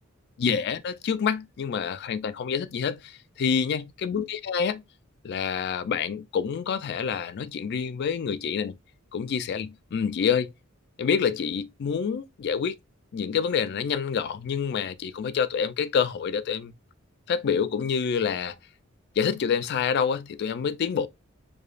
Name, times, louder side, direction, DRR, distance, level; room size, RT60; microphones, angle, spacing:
voice 1, 0.4-4.8 5.2-8.7 9.1-10.5 11.0-12.8 13.1-16.7 17.3-18.5 19.2-21.1, left 6 dB, 55° left, 0.3 m, -27 dB
4.8 x 2.2 x 2.4 m
head